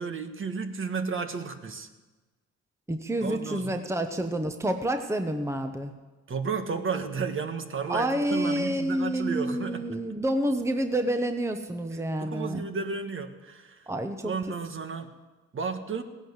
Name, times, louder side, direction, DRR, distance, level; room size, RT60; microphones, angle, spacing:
voice 1, 0.0-1.9 3.2-3.8 6.3-9.9 12.2-13.9 14.2-15.1 15.5-16.0, right 5 dB, 45° right, 7 dB, 1.5 m, -33 dB
voice 2, 2.9-5.9 7.9-12.6 13.9-14.3, right 1 dB, 10° right, 7 dB, 1.1 m, -28 dB
16.5 x 10.5 x 8.1 m, 1.2 s
cardioid pair, 90°, 30 cm